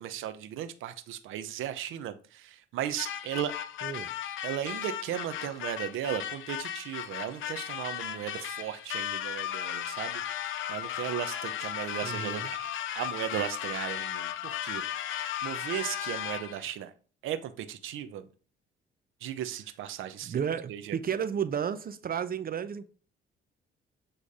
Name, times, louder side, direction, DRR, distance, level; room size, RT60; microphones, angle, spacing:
voice 1, 0.0-3.5 4.4-16.9 17.2-18.3 19.2-20.4 20.7-21.0, right 11 dB, 90° right, 0.9 m, -36 dB
sound 1, 3.0-16.7, left 11 dB, 80° left, 0.9 m, -36 dB
voice 2, 3.8-4.1 12.0-12.5 20.3-22.9, right 8 dB, 45° right, 0.8 m, -32 dB
8.9 x 3.3 x 5.4 m
cardioid pair, 90°, 20 cm